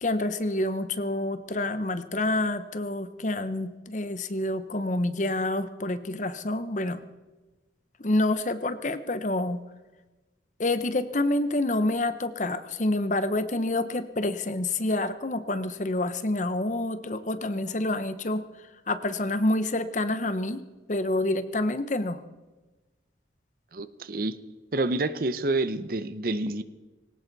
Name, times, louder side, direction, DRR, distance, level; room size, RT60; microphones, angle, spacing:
voice 1, 0.0-7.0 8.0-9.6 10.6-20.6 20.9-22.2, left 2 dB, 40° left, 12 dB, 0.9 m, -28 dB
voice 2, 23.7-24.4 24.7-26.6, right 2 dB, 50° right, 13 dB, 0.7 m, -28 dB
20.0 x 18.0 x 4.1 m, 1.2 s
head